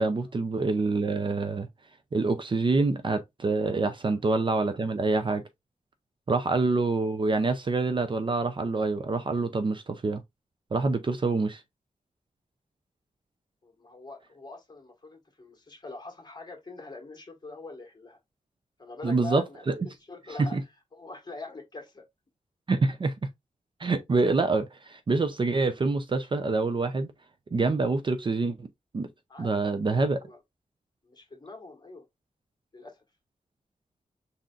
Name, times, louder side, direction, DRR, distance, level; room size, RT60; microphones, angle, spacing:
voice 1, 0.0-1.7 2.1-5.4 6.3-10.2 10.7-11.6 19.0-19.9 20.4-20.6 22.7-23.1 23.8-27.1 27.5-28.7 28.9-29.1 29.4-30.2, right 3 dB, 35° right, 0.5 m, -26 dB
voice 2, 13.6-18.2 18.8-20.6 20.9-22.0 29.3-29.5 30.2-30.4 31.0-32.0 32.7-33.0, left 2 dB, 30° left, 1.5 m, -43 dB
5.4 x 3.8 x 2.4 m
wide cardioid pair, 160°, 14 cm